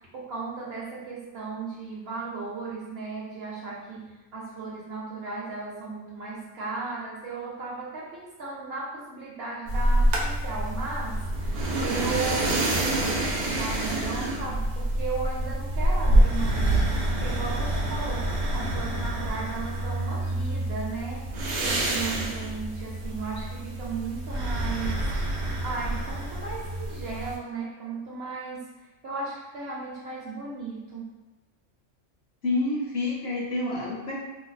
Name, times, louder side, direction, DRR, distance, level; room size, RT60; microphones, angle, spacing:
voice 1, 0.0-21.3 21.6-25.1 25.6-31.1, right 4 dB, 60° right, -5 dB, 0.8 m, -36 dB
sound 1, 9.7-27.4, right 1 dB, 75° right, 0.4 m, -27 dB
voice 2, 32.4-34.2, left 2 dB, 60° left, -4 dB, 0.9 m, -28 dB
2.6 x 2.0 x 3.9 m, 1.1 s
omnidirectional pair, 1.3 m